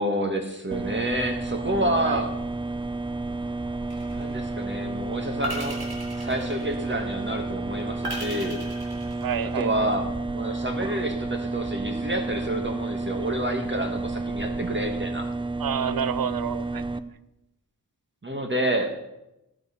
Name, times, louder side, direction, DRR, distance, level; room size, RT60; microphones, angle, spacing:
voice 1, 0.0-2.3 4.1-5.8 6.1-8.6 9.6-15.3 18.2-18.9, right 1 dB, 30° right, 4 dB, 1.5 m, -29 dB
sound 1, 0.7-17.0, right 3 dB, 15° right, 0.6 m, -31 dB
sound 2, 3.9-4.5 5.4-7.1 8.0-9.8, right 1 dB, 90° right, 4.2 m, -36 dB
voice 2, 9.2-9.9 15.6-16.8, right 8 dB, 65° right, 15 dB, 0.7 m, -29 dB
15.5 x 6.5 x 5.6 m, 0.89 s
cardioid pair, 70°, 37 cm